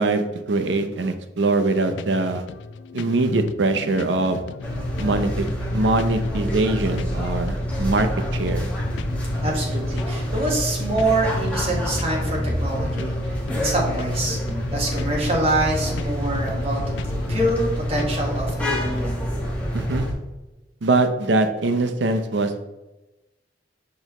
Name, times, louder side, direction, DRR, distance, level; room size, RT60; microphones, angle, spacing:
voice 1, 0.0-2.4 2.9-4.4 5.0-5.5 5.7-8.7 19.7-20.1 20.8-22.6, right 2 dB, 80° right, 8 dB, 0.6 m, -22 dB
sound 1, 1.9-19.0, left 5 dB, 85° left, 0.3 m, -36 dB
sound 2, 4.6-20.1, equal, 10° left, 1.2 m, -27 dB
voice 2, 9.4-14.4 14.7-16.9 17.3-19.2, right 1 dB, 35° right, -2 dB, 1.6 m, -25 dB
6.0 x 5.3 x 3.1 m, 1.0 s
head